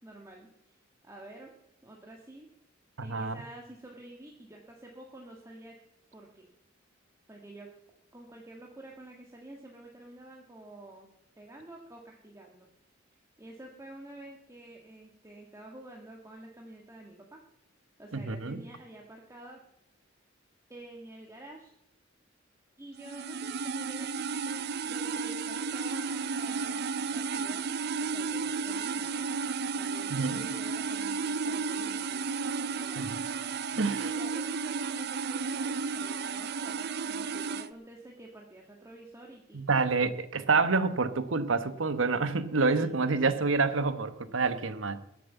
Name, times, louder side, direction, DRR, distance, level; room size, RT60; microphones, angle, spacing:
voice 1, 0.0-0.8 1.0-1.5 1.8-2.5 3.0-5.8 6.1-6.5 7.3-7.7 8.1-11.1 11.4-12.7 13.4-17.4 18.0-19.6 20.7-21.7 22.8-27.7 28.0-29.3 29.7-32.2 32.7-33.2 33.7-40.0 42.5-43.3, right 1 dB, 15° right, 1.6 m, -49 dB
voice 2, 3.0-3.3 18.1-18.6 30.1-30.4 33.0-33.1 33.8-34.1 39.5-45.0, right 4 dB, 80° right, 1.1 m, -28 dB
sound 1, 23.0-37.7, right 5 dB, 55° right, 0.5 m, -33 dB
21.5 x 7.6 x 6.8 m
head